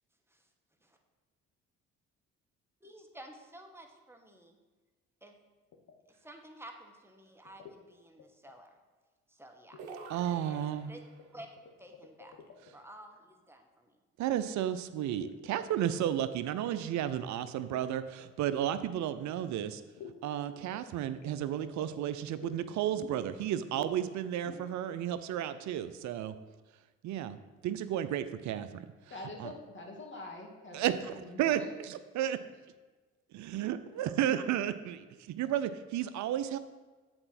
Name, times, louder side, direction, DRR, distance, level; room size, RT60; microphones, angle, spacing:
voice 1, 2.8-4.6 5.2-5.4 6.1-8.8 9.3-9.8 10.5-11.0 11.3-11.5 11.8-12.3 12.7-14.0, right 1 dB, 10° right, 3 dB, 1.4 m, -52 dB
sound 1, 5.7-5.9 7.4-7.8 8.2-8.5 9.7-10.0 10.2-10.9 11.2-12.8 15.1-15.3 15.7-16.0 16.3-16.4 16.7-18.4 20.0-20.2 20.7-22.6 23.0-23.4 23.7-23.9 24.3-24.6, left 7 dB, 60° left, 1.2 m, -50 dB
sound 2, 9.8-11.3, right 4 dB, 85° right, 0.9 m, -48 dB
voice 2, 10.1-10.9 14.2-19.8 20.2-26.3 27.0-27.4 27.6-28.9 29.4-29.5 30.7-32.4 33.3-36.6, right 11 dB, 65° right, 12 dB, 0.6 m, -33 dB
voice 3, 29.1-31.7, left 2 dB, 35° left, 0 dB, 2.3 m, -45 dB
7.9 x 4.3 x 5.9 m, 1.3 s
hypercardioid pair, 55°, 32 cm